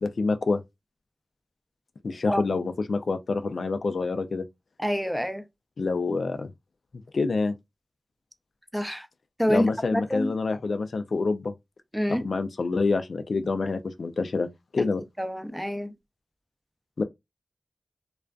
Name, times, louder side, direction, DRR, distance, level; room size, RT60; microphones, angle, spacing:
voice 1, 0.0-0.6 2.0-4.4 5.8-6.5 7.1-7.5 9.5-11.5 12.1-14.5 14.7-15.0 17.0-17.1, left 3 dB, 80° left, 0.3 m, -27 dB
voice 2, 4.8-5.4 8.7-9.1 9.4-10.3 11.9-12.3 15.2-15.9, equal, ahead, 0.5 m, -27 dB
2.5 x 2.3 x 2.2 m
cardioid pair, 40°, 0 cm